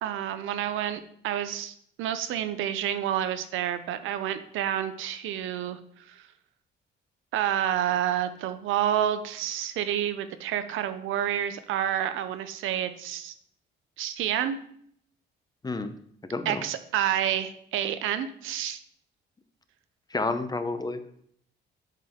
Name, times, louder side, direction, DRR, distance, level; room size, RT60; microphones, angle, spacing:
voice 1, 0.0-5.8 7.3-13.3 14.0-14.6 16.5-18.8, right 10 dB, 85° right, 11 dB, 0.6 m, -29 dB
voice 2, 15.6-16.0 16.3-16.7 20.1-21.2, left 3 dB, 20° left, 9 dB, 0.7 m, -30 dB
7.5 x 5.4 x 3.6 m, 0.64 s
cardioid pair, 90°, 20 cm